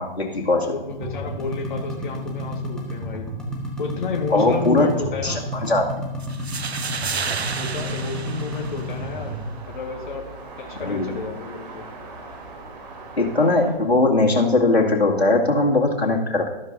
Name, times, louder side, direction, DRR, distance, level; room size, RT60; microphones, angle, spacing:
voice 1, 0.0-0.7 4.3-4.9 5.2-5.9 10.8-11.1 13.2-16.5, left 2 dB, 90° left, -1 dB, 2.3 m, -20 dB
voice 2, 0.6-3.3 3.8-5.5 7.6-9.4 9.7-10.3 10.6-11.9, left 5 dB, 50° left, 1 dB, 1.7 m, -31 dB
sound 1, 0.9-9.4, equal, ahead, 1.5 m, -31 dB
sound 2, 6.2-9.2, right 5 dB, 85° right, 0.8 m, -31 dB
sound 3, 7.6-13.7, right 2 dB, 40° right, 3.2 m, -40 dB
13.0 x 13.0 x 2.7 m, 1.1 s
figure-of-eight pair, 130°, 31 cm